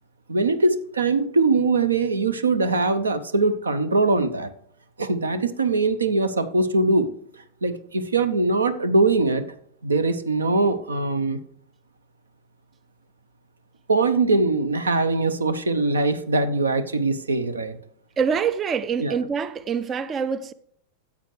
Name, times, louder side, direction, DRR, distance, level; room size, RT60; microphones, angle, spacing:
voice 1, 0.3-4.5 5.0-7.1 7.6-9.4 9.8-11.4 13.9-17.8 19.0-19.1, right 3 dB, 75° right, 0.7 m, -22 dB
voice 2, 18.2-20.5, right 6 dB, 25° right, 0.4 m, -25 dB
14.0 x 8.2 x 3.2 m
figure-of-eight pair, 90°, 0 cm